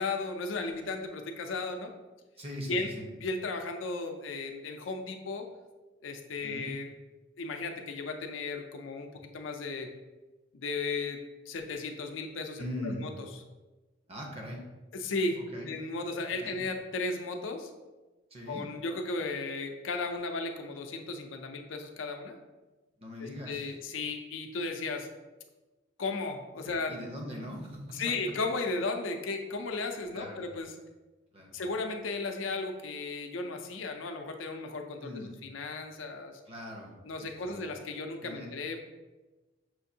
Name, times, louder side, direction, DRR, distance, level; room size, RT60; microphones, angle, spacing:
voice 1, 0.0-1.9 2.7-2.9 3.2-5.4 6.0-6.9 7.4-9.9 10.5-11.2 11.5-13.1 14.9-15.4 15.7-17.7 18.5-22.4 23.5-25.1 26.0-26.9 27.9-30.7 31.5-35.1 35.4-36.4 37.0-38.8, left 3 dB, 85° left, 5 dB, 0.5 m, -35 dB
voice 2, 2.4-3.1 6.4-6.7 12.6-13.0 14.1-14.6 15.4-15.7 16.4-16.6 18.3-18.7 23.0-23.7 26.6-27.8 30.1-30.4 31.3-31.6 35.0-35.4 36.5-36.9 37.2-37.6 38.2-38.5, left 1 dB, 30° right, 0 dB, 0.7 m, -41 dB
6.2 x 2.6 x 2.7 m, 1.2 s
head